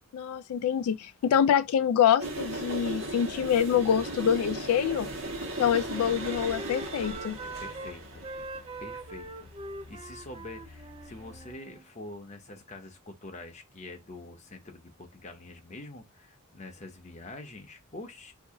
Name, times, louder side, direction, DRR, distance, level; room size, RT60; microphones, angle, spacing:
voice 1, 0.1-5.1 5.6-7.4, left 8 dB, 85° left, 0.3 m, -25 dB
sound 1, 2.2-11.5, right 1 dB, 75° right, 1.2 m, -38 dB
Wind instrument woodwind instrument, 5.3-7.9 8.2-11.9, right 2 dB, 25° right, 0.4 m, -42 dB
voice 2, 7.4-8.2 8.8-9.5 9.9-18.3, left 2 dB, 35° left, 0.8 m, -45 dB
2.8 x 2.6 x 3.6 m
head